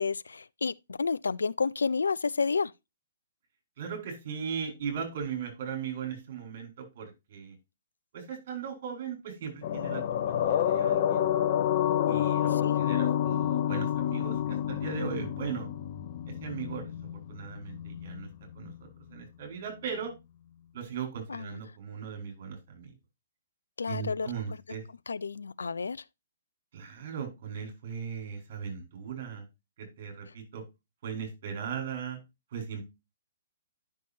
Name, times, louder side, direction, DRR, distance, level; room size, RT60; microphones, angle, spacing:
voice 1, 0.0-2.7 12.6-12.8 21.3-21.5 23.8-24.3 25.1-26.0, left 5 dB, 75° left, 0.4 m, -30 dB
voice 2, 3.8-7.6 8.1-11.3 12.1-15.7 16.3-18.3 18.5-20.1 20.7-22.9 23.9-24.8 26.7-29.4 29.8-30.6 31.0-32.2 32.5-32.8, right 7 dB, 50° right, 4.6 m, -38 dB
sound 1, 9.6-18.3 18.5-18.7, left 10 dB, 40° left, 0.8 m, -29 dB
10.5 x 6.3 x 2.7 m
figure-of-eight pair, 125°, 0 cm